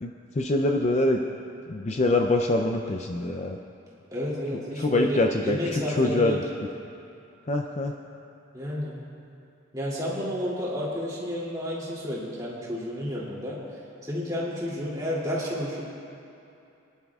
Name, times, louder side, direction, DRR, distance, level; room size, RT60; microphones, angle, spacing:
voice 1, 0.0-1.2 1.7-3.6 4.8-6.4 7.5-7.9, left 2 dB, 30° left, 3 dB, 0.4 m, -25 dB
voice 2, 4.1-6.4 8.5-8.9 9.7-13.6 14.1-15.8, equal, 15° right, -6 dB, 2.7 m, -31 dB
24.5 x 11.0 x 2.4 m, 2.7 s
head